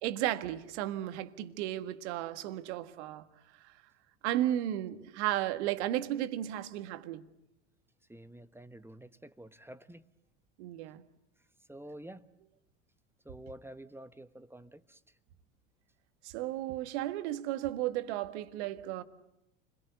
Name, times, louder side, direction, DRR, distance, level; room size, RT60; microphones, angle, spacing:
voice 1, 0.0-3.2 4.2-7.3 10.6-11.0 16.2-19.0, right 13 dB, 65° right, 1.7 m, -34 dB
voice 2, 8.1-10.0 11.7-12.2 13.2-15.0, right 1 dB, 5° right, 1.2 m, -49 dB
29.0 x 22.0 x 8.1 m
hypercardioid pair, 80°, 36 cm